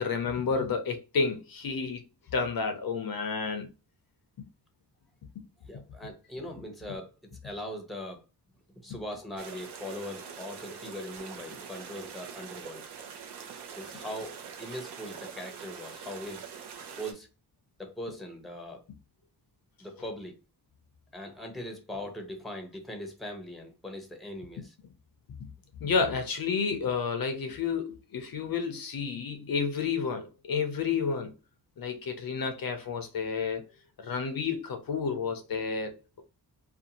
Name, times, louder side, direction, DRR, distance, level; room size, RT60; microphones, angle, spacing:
voice 1, 0.0-2.0 2.3-3.7 4.4-4.5 25.8-31.3 31.8-33.6 34.0-36.2, left 5 dB, 60° left, 0.5 m, -30 dB
voice 2, 5.6-7.2 7.4-8.2 8.8-12.9 13.7-16.4 17.0-17.3 17.8-18.8 19.8-20.4 21.1-24.7, left 1 dB, ahead, 0.7 m, -40 dB
sound 1, 9.4-17.1, right 7 dB, 75° right, 0.6 m, -44 dB
2.6 x 2.3 x 2.7 m
wide cardioid pair, 115°, 40 cm